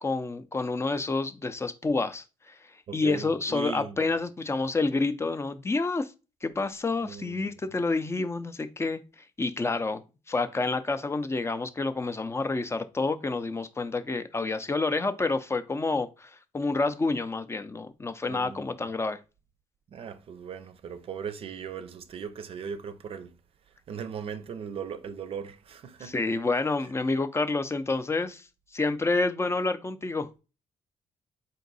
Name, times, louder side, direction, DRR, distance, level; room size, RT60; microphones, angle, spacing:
voice 1, 0.0-2.6 2.9-6.1 6.4-9.0 9.4-10.0 10.3-19.2 26.0-28.5 28.7-30.4, left 3 dB, 25° left, 0.5 m, -28 dB
voice 2, 2.9-4.0 7.0-7.4 18.3-18.6 19.9-23.3 23.9-26.1, right 6 dB, 55° right, 0.5 m, -38 dB
3.8 x 2.6 x 4.0 m
supercardioid pair, 70°, 11 cm